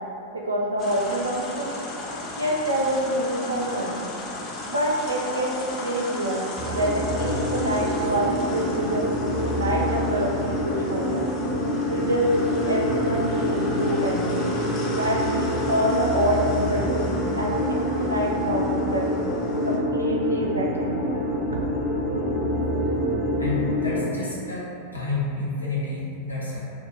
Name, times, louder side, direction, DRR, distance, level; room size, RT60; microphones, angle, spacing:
voice 1, 0.3-1.8 2.4-4.0 4.7-11.3 11.9-14.3 14.9-19.1 19.6-21.0, right 1 dB, 80° right, -2 dB, 0.3 m, -26 dB
sound 1, 0.8-19.8, left 2 dB, 35° left, 0.3 m, -35 dB
sound 2, 6.6-24.0, equal, 15° right, 0.6 m, -26 dB
voice 2, 23.4-24.7 24.9-26.6, left 3 dB, 80° left, -6 dB, 0.6 m, -29 dB
2.3 x 2.0 x 3.0 m, 2.6 s
figure-of-eight pair, 90°, 0 cm